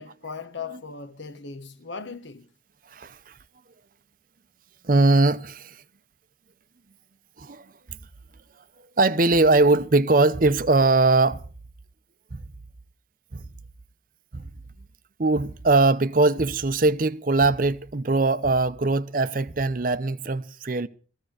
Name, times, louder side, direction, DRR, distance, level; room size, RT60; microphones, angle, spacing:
voice 1, 0.0-2.5, left 5 dB, 75° left, 1.2 m, -38 dB
voice 2, 2.9-3.4 4.8-5.8 7.4-7.7 9.0-11.5 12.3-12.4 13.3-13.4 14.3-14.5 15.2-20.9, right 3 dB, 45° right, 0.7 m, -21 dB
16.0 x 14.5 x 4.9 m
head